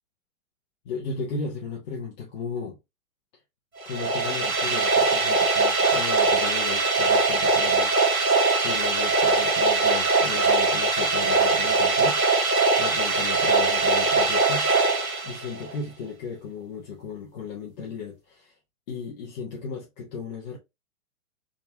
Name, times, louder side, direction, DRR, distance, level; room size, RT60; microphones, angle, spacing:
voice 1, 0.8-2.8 3.8-8.3 8.6-12.2 12.8-14.9 15.2-18.6 18.9-20.6, left 5 dB, 35° left, 0.9 m, -36 dB
sound 1, 3.8-15.7, right 3 dB, 85° right, 0.9 m, -22 dB
3.6 x 2.9 x 2.7 m
figure-of-eight pair, 115°, 41 cm